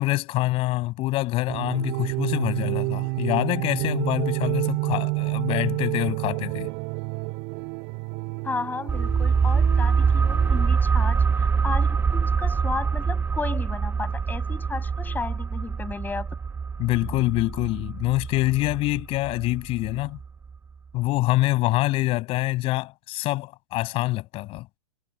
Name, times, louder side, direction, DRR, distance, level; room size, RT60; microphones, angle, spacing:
voice 1, 0.0-6.7 16.8-20.2 20.9-24.7, left 19 dB, 40° left, 7.5 m, -25 dB
sound 1, 1.5-10.6, right 34 dB, 45° right, 3.4 m, -29 dB
voice 2, 8.4-16.3, left 4 dB, 10° left, 7.7 m, -33 dB
sound 2, 8.9-20.3 20.5-20.6, right 5 dB, 15° right, 1.0 m, -24 dB
figure-of-eight pair, 105°, 15 cm